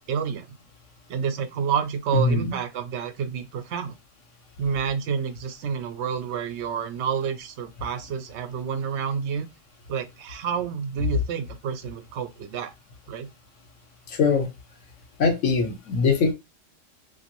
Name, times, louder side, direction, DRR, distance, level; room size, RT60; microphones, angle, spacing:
voice 1, 0.1-0.5 1.1-3.9 4.6-9.5 9.9-12.7 13.1-13.3, right 7 dB, 70° right, 0.8 m, -29 dB
voice 2, 2.1-2.6 14.1-14.5 15.2-16.3, left 4 dB, 75° left, 1.2 m, -22 dB
2.9 x 2.6 x 2.9 m
omnidirectional pair, 1.3 m